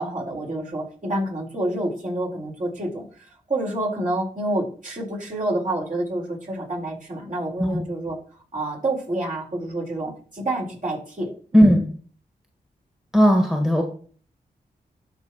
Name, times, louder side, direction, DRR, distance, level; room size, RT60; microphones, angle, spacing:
voice 1, 0.0-8.2 8.5-11.6, right 1 dB, 50° right, -4 dB, 4.1 m, -28 dB
voice 2, 11.5-11.8 13.1-13.8, equal, 5° right, 2 dB, 1.7 m, -16 dB
13.0 x 4.3 x 3.0 m, 0.44 s
cardioid pair, 40°, 18 cm